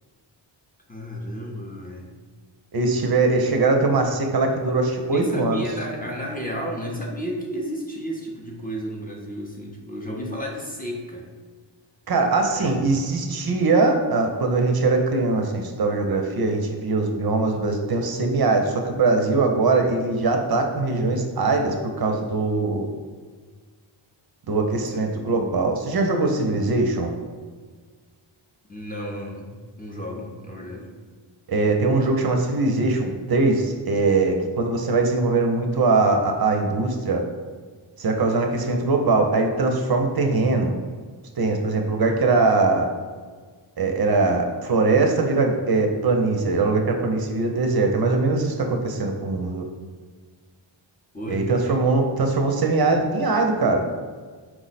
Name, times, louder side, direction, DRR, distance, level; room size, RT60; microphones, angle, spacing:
voice 1, 0.9-2.1 5.1-11.3 12.5-13.2 24.8-25.3 28.7-30.9 42.1-42.3 51.1-51.9, equal, 20° left, -2 dB, 0.5 m, -33 dB
voice 2, 2.7-5.6 12.1-22.9 24.5-27.1 31.5-37.2 38.0-40.7 41.4-42.9 43.8-49.6 51.3-53.9, right 3 dB, 50° right, 3 dB, 0.5 m, -21 dB
4.5 x 2.0 x 4.0 m, 1.5 s
wide cardioid pair, 95°, 48 cm